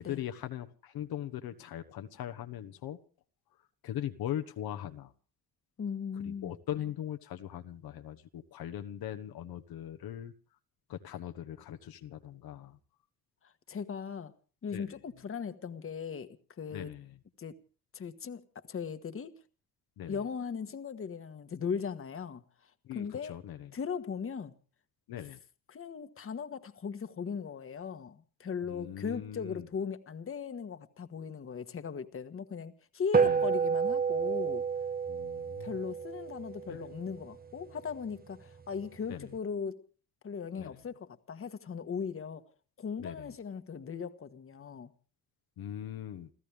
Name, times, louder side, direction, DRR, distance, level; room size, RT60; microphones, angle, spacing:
voice 1, 0.0-3.0 3.8-5.1 6.2-10.3 10.9-12.8 14.7-15.0 16.7-17.2 20.0-20.2 22.8-23.7 25.1-25.4 28.6-29.7 33.2-33.4 35.1-35.8 36.7-36.8 39.1-39.3 40.6-40.8 43.0-43.3 45.6-46.3, left 11 dB, 65° left, 1.3 m, -40 dB
voice 2, 5.8-6.5 13.7-14.3 14.6-16.9 17.4-17.6 17.9-18.4 18.7-19.3 20.1-22.4 22.9-23.4 23.7-24.5 25.7-34.6 35.6-39.8 40.2-42.4 42.8-44.9, left 6 dB, 35° left, 1.4 m, -38 dB
sound 1, 33.1-37.8, right 6 dB, 25° right, 1.0 m, -30 dB
30.0 x 14.0 x 3.4 m
cardioid pair, 90°, 39 cm